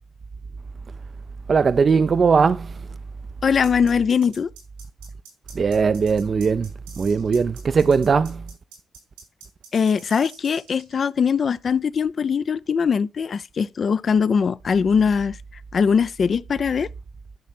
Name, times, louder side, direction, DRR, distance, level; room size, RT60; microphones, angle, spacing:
voice 1, 1.5-2.7 5.5-6.7 7.0-8.4, right 5 dB, 50° right, 0.5 m, -19 dB
voice 2, 3.4-4.5 9.7-15.4 15.7-16.9, left 6 dB, 55° left, 0.5 m, -21 dB
sound 1, 3.6-11.0, right 5 dB, 90° right, 4.1 m, -45 dB
10.5 x 5.9 x 4.3 m
hypercardioid pair, 45°, 0 cm